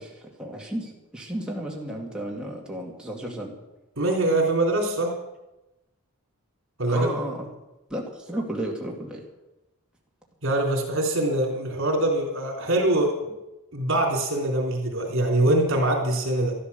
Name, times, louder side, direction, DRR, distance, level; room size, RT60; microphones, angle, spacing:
voice 1, 0.1-3.5 6.9-7.5 7.9-9.2, right 1 dB, 5° right, -2 dB, 2.4 m, -33 dB
voice 2, 4.0-5.1 6.8-7.1 10.4-13.3 13.7-16.5, right 1 dB, 60° right, 1 dB, 3.6 m, -23 dB
13.0 x 13.0 x 7.0 m, 0.97 s
head